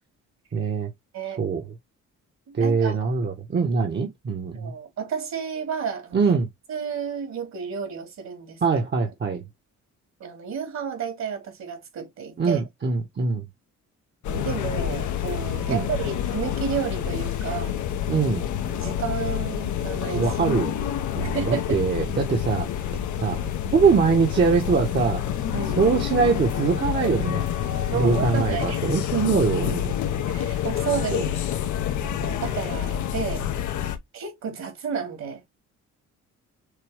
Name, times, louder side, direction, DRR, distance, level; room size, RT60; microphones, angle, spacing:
voice 1, 0.5-0.9 1.4-1.7 2.5-4.7 6.1-6.5 8.6-9.4 12.4-13.5 15.7-15.8 18.1-18.5 20.1-20.8 21.1-22.7 23.2-23.4 23.7-25.2 25.8-27.4 27.9-30.0 31.1-31.3, right 5 dB, 35° right, 1.2 m, -23 dB
voice 2, 2.5-3.1 4.5-6.2 6.7-8.6 10.2-12.6 14.3-17.8 18.7-20.3 21.3-21.8 25.5-25.8 27.9-28.8 30.3-31.2 32.0-33.4 34.1-35.4, right 6 dB, 60° right, 2.6 m, -31 dB
sound 1, 14.2-34.0, left 10 dB, 75° left, 0.9 m, -28 dB
6.7 x 2.3 x 3.4 m
cardioid pair, 90°, 30 cm